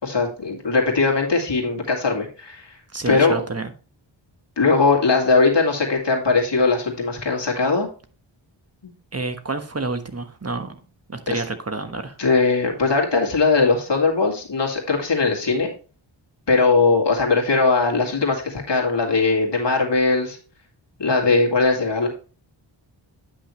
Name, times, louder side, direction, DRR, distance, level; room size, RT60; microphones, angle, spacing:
voice 1, 0.0-2.8 3.1-3.4 4.6-7.9 11.3-11.4 12.2-15.7 16.5-20.4 21.0-22.1, left 4 dB, 60° left, 0 dB, 2.2 m, -20 dB
voice 2, 2.9-3.7 9.1-10.8 11.1-12.1, right 3 dB, 30° right, 8 dB, 1.2 m, -28 dB
9.6 x 6.0 x 3.1 m, 0.36 s
wide cardioid pair, 90°, 48 cm